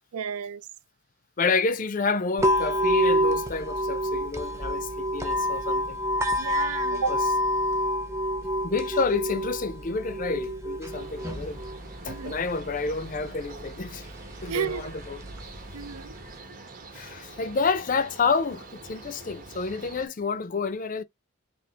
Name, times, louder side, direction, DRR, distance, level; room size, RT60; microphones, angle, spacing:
voice 1, 0.1-0.7 6.4-7.2 12.0-12.3 14.5-14.9 15.7-16.2, right 6 dB, 85° right, 0.5 m, -32 dB
voice 2, 1.4-6.0 7.1-7.2 8.1-8.2 8.4-11.6 12.0-14.1 14.4-15.2 16.9-21.0, left 4 dB, 40° left, 0.5 m, -29 dB
sound 1, 2.4-16.4, equal, 15° right, 0.6 m, -28 dB
sound 2, 10.9-20.1, right 3 dB, 40° right, 0.9 m, -45 dB
3.5 x 2.8 x 2.8 m
head